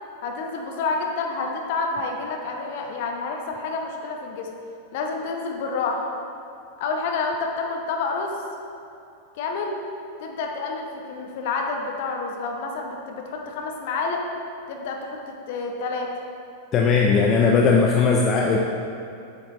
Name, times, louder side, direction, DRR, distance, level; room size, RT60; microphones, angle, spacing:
voice 1, 0.2-4.5 4.9-6.1 6.8-8.4 9.3-9.7 10.2-14.2 14.7-16.1, left 4 dB, 50° left, 2 dB, 1.0 m, -29 dB
voice 2, 16.7-18.6, left 5 dB, 30° left, 0 dB, 0.6 m, -18 dB
8.5 x 7.1 x 3.2 m, 2.7 s
figure-of-eight pair, 90°, 0 cm